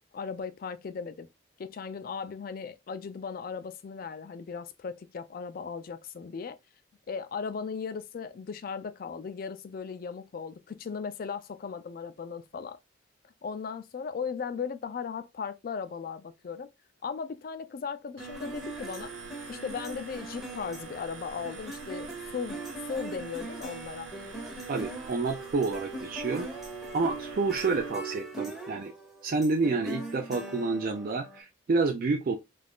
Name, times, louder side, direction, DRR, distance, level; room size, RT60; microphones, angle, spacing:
voice 1, 0.1-1.3 1.6-6.6 7.1-12.8 13.4-16.7 17.0-19.1 19.5-22.6 22.9-24.1, left 6 dB, 45° left, 0.3 m, -37 dB
sound 1, 18.2-31.4, right 2 dB, ahead, 0.6 m, -41 dB
sound 2, 18.2-27.9, right 4 dB, 75° right, 0.7 m, -46 dB
voice 2, 24.7-26.5 26.9-28.9 29.2-32.4, right 3 dB, 45° right, 0.3 m, -29 dB
2.4 x 2.3 x 3.4 m
head